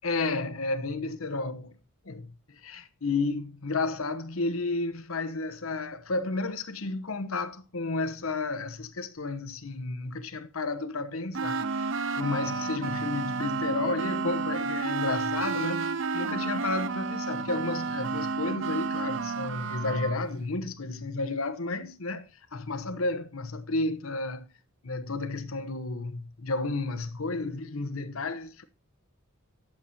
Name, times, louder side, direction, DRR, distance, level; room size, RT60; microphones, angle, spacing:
voice 1, 0.0-1.7 2.0-24.5 24.8-28.6, left 3 dB, 85° left, 1.1 m, -32 dB
sound 1, 11.3-20.2, right 4 dB, 65° right, 0.6 m, -31 dB
11.5 x 7.3 x 4.3 m
head